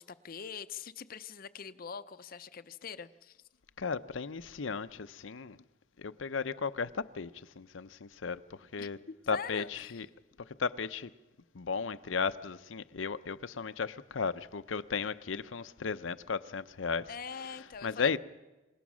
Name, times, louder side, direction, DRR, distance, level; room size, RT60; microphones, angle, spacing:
voice 1, 0.0-3.4 8.8-8.9 9.3-10.0 17.1-18.2, left 6 dB, 50° left, 0.6 m, -43 dB
voice 2, 3.8-5.6 6.0-7.3 7.6-8.4 8.7-9.0 9.3-10.1 10.6-11.1 11.5-17.1 17.8-18.2, left 5 dB, 85° left, 0.7 m, -35 dB
27.5 x 17.5 x 6.3 m
head